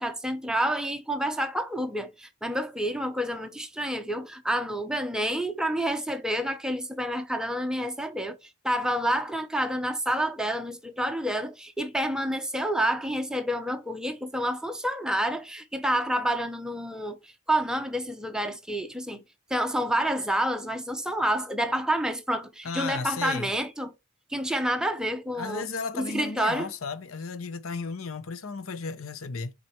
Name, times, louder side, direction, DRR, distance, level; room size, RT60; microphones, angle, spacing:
voice 1, 0.0-8.4 8.6-19.2 19.5-23.9 24.3-25.7 25.9-26.7, right 1 dB, 5° right, 0.8 m, -28 dB
voice 2, 22.6-23.5 25.4-29.5, left 4 dB, 90° left, 0.8 m, -34 dB
6.1 x 4.1 x 4.4 m
head